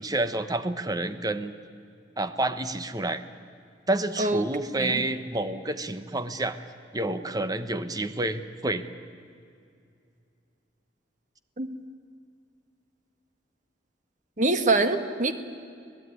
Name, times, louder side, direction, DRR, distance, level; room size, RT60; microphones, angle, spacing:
voice 1, 0.0-1.5 2.2-3.2 3.9-6.6 6.9-8.8, right 2 dB, 20° right, 10 dB, 1.1 m, -29 dB
voice 2, 14.4-15.3, right 2 dB, 45° right, 9 dB, 1.6 m, -24 dB
26.0 x 18.0 x 9.8 m, 2.4 s
head